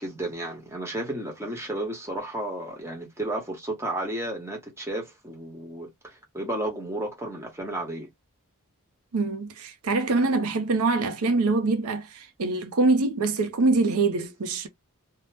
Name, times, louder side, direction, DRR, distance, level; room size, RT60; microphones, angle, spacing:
voice 1, 0.0-8.1, right 1 dB, 10° right, 1.1 m, -33 dB
voice 2, 9.1-14.7, right 3 dB, 75° right, 0.6 m, -24 dB
2.7 x 2.1 x 3.2 m
head